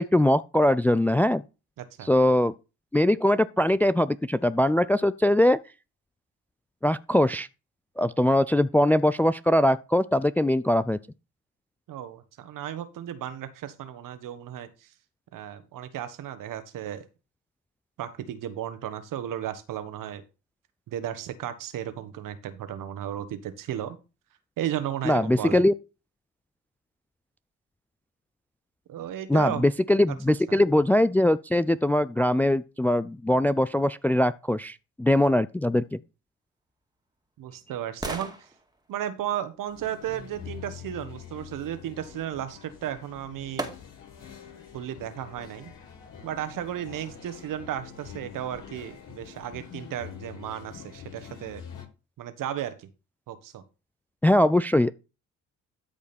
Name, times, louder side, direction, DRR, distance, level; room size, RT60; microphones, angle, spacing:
voice 1, 0.0-1.4 2.0-2.5 2.9-5.6 6.8-7.5 8.0-11.0 25.1-25.7 29.3-36.0 54.2-54.9, left 1 dB, 5° left, 0.4 m, -22 dB
voice 2, 1.8-2.1 11.9-14.9 15.3-17.0 18.0-20.2 20.9-24.0 24.6-25.6 28.9-29.7 30.5-30.6 37.4-38.3 38.9-43.7 44.7-45.7 46.2-51.6 52.2-52.9 53.3-53.6, right 11 dB, 60° right, 1.5 m, -34 dB
sound 1, 36.4-40.6 42.7-42.8 43.6-44.3 44.8-44.9, right 2 dB, 10° right, 2.2 m, -41 dB
sound 2, 39.7-51.8, left 8 dB, 55° left, 5.5 m, -45 dB
13.0 x 5.0 x 4.3 m
hypercardioid pair, 50°, 37 cm